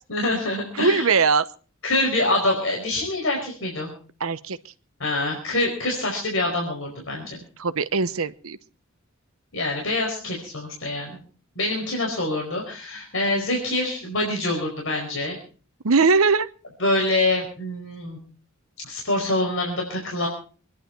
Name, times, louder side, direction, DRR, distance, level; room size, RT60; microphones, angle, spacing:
voice 1, 0.1-1.1 1.8-3.9 5.0-7.4 9.5-11.2 11.5-15.4 16.8-18.2 18.9-20.3, left 2 dB, 70° left, -1 dB, 4.9 m, -25 dB
voice 2, 0.8-1.5 4.2-4.6 7.6-8.6 15.8-16.5, right 4 dB, 90° right, 13 dB, 0.9 m, -20 dB
25.5 x 11.0 x 4.6 m, 0.39 s
head